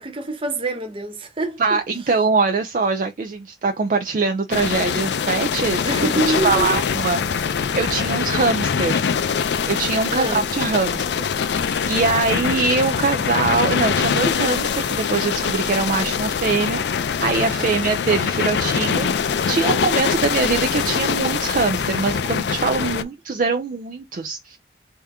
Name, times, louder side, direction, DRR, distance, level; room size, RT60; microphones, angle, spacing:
voice 1, 0.0-1.8 5.8-6.8 8.3-8.5 10.1-10.5 17.6-17.9 22.8-23.0, right 2 dB, 30° right, 0.8 m, -26 dB
voice 2, 1.6-9.0 9.7-24.6, right 4 dB, 50° right, 0.4 m, -23 dB
sound 1, 4.5-23.0, left 6 dB, 70° left, 0.4 m, -23 dB
3.5 x 2.7 x 3.4 m
head